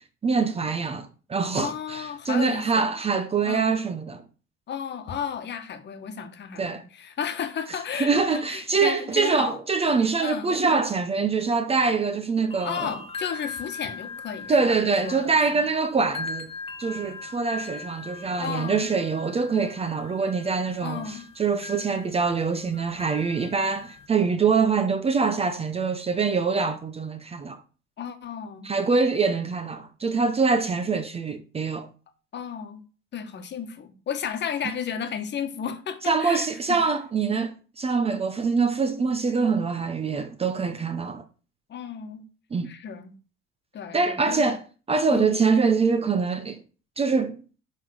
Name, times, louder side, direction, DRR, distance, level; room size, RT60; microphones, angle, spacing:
voice 1, 0.2-4.2 6.6-6.8 8.0-12.9 14.5-16.5 16.8-27.6 28.6-31.9 36.1-41.2 42.5-42.7 43.9-44.6 44.9-46.6 47.0-47.4, right 4 dB, 20° right, 0.7 m, -24 dB
voice 2, 1.5-2.9 3.4-3.8 4.7-9.6 10.2-10.5 12.6-15.6 18.4-18.9 20.8-21.3 28.0-28.7 32.3-32.8 33.1-36.8 41.7-42.2 42.6-43.2 43.7-44.6 45.1-45.4, left 8 dB, 35° left, 1.4 m, -33 dB
sound 1, 12.5-24.1, left 4 dB, 20° left, 0.9 m, -40 dB
10.5 x 3.8 x 6.3 m
cardioid pair, 140°, 30 cm